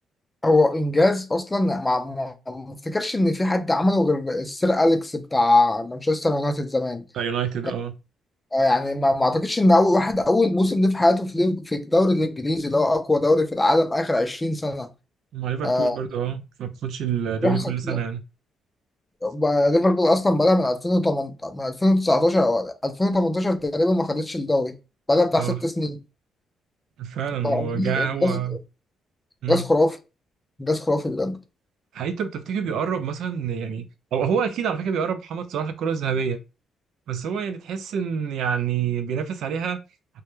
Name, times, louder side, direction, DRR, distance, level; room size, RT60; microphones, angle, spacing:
voice 1, 0.4-7.0 8.5-14.9 15.6-16.0 17.4-18.0 19.2-24.7 25.1-26.0 27.4-28.4 29.5-30.0 30.6-31.4, left 2 dB, 15° left, 0.4 m, -21 dB
voice 2, 7.1-7.9 15.3-18.2 25.4-25.6 27.0-28.6 29.4-29.7 31.9-33.9 34.1-36.4 37.1-39.8, right 7 dB, 75° right, 0.4 m, -27 dB
2.1 x 2.1 x 3.0 m
cardioid pair, 90°, 0 cm